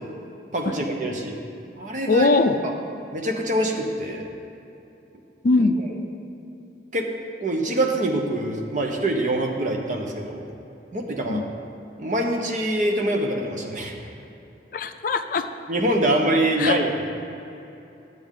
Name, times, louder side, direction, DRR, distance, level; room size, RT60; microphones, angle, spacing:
voice 1, 0.5-1.3 1.8-2.3 2.6-2.7 3.1-4.2 6.9-7.1 7.4-10.5 10.9-11.4 12.0-14.0 15.7-16.9, right 1 dB, 45° right, 1 dB, 0.9 m, -24 dB
voice 2, 2.1-2.6 5.4-5.8 11.3-11.5 14.7-15.5 16.6-16.8, left 3 dB, 50° left, 8 dB, 0.4 m, -21 dB
10.5 x 7.8 x 3.7 m, 2.9 s
head